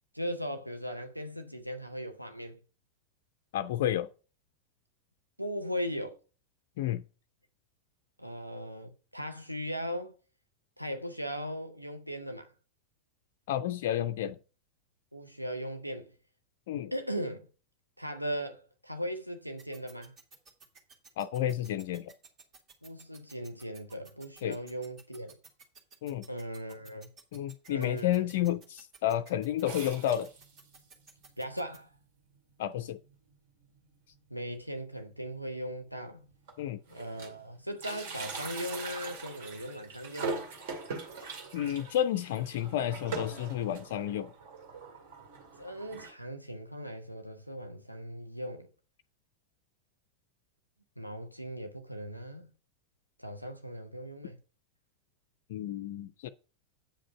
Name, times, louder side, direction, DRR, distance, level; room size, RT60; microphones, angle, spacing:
voice 1, 0.1-2.6 5.4-6.2 8.2-10.1 10.8-12.5 15.1-16.1 16.9-17.5 18.0-20.1 22.8-25.4 26.3-27.1 27.7-28.3 31.4-31.9 34.3-36.2 36.9-40.5 45.6-48.7 51.0-52.5 53.2-54.4, equal, 90° right, 0.7 m, -38 dB
voice 2, 3.5-4.1 6.8-7.0 13.5-14.4 16.7-16.9 21.2-22.1 24.4-24.6 26.0-26.2 27.3-30.3 32.6-33.0 36.6-36.8 41.5-44.3 55.5-56.3, left 11 dB, 55° left, 0.4 m, -31 dB
sound 1, 19.6-31.8, right 5 dB, 35° right, 2.1 m, -54 dB
sound 2, 29.7-30.8 31.4-31.5 31.7-31.8 32.6-32.7 33.1-33.3 33.6-33.7 35.0-35.1 35.8-35.9 36.2-37.4 37.7-46.1, right 4 dB, 55° right, 2.2 m, -42 dB
8.7 x 5.1 x 5.5 m
figure-of-eight pair, 90°, 0 cm